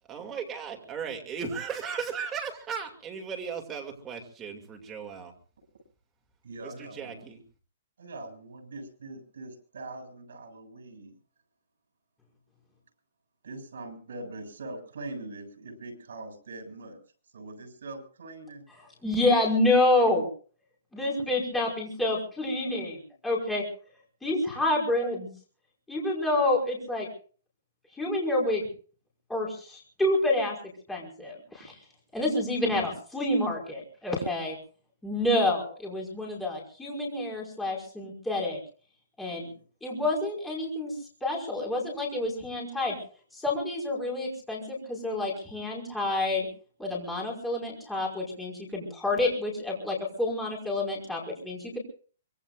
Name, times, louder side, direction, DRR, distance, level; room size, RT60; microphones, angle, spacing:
voice 1, 0.1-5.3 6.6-7.4, right 6 dB, 15° right, 3 dB, 2.4 m, -36 dB
voice 2, 6.4-7.2 8.0-11.1 13.4-17.0 17.3-18.6 39.4-39.6, right 2 dB, 75° right, 4 dB, 7.2 m, -42 dB
voice 3, 19.0-20.3 20.9-23.6 24.2-25.3 25.9-27.1 28.0-28.7 29.3-30.6 30.9-31.8 32.1-34.6 35.0-38.6 39.2-39.5 39.8-40.9 41.2-42.9 43.3-46.5 46.8-51.8, left 2 dB, 5° left, -3 dB, 5.3 m, -28 dB
24.5 x 22.5 x 2.5 m, 0.41 s
hypercardioid pair, 165°, 0 cm